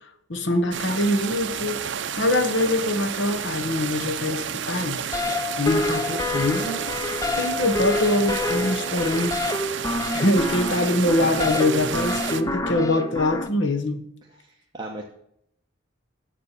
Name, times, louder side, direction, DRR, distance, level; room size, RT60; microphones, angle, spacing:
voice 1, 0.3-1.8 2.2-5.0 5.6-6.8 7.3-9.4 9.7-9.8 10.1-14.0, left 1 dB, 60° left, 1.0 m, -23 dB
sound 1, 0.7-12.4, right 8 dB, 60° right, 0.6 m, -31 dB
sound 2, 5.1-13.5, left 2 dB, 15° left, 0.4 m, -28 dB
voice 2, 14.4-15.0, right 2 dB, 20° right, 0.9 m, -35 dB
7.3 x 7.2 x 6.7 m
head